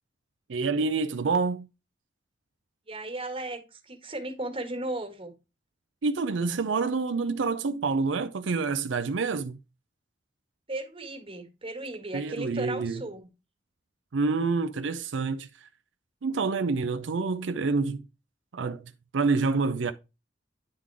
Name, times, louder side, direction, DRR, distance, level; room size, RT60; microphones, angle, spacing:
voice 1, 0.5-1.7 6.0-9.6 12.1-13.0 14.1-15.7 16.2-18.0 18.5-19.9, right 4 dB, 80° right, 0.5 m, -27 dB
voice 2, 2.9-5.3 10.7-13.3, right 2 dB, 30° right, 1.7 m, -36 dB
9.9 x 3.8 x 4.7 m
head